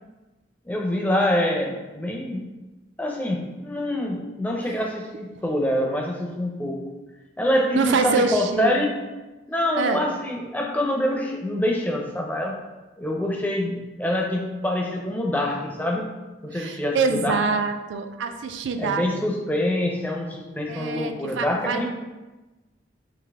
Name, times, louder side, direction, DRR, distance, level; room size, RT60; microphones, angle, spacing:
voice 1, 0.7-2.4 3.0-6.8 7.4-8.9 9.5-12.6 13.0-16.1 16.4-17.4 18.8-21.9, left 1 dB, 10° left, 0 dB, 0.4 m, -25 dB
voice 2, 7.7-8.8 9.8-10.1 16.5-19.1 20.7-21.9, right 4 dB, 75° right, 7 dB, 0.4 m, -25 dB
4.0 x 2.8 x 3.4 m, 1.1 s
head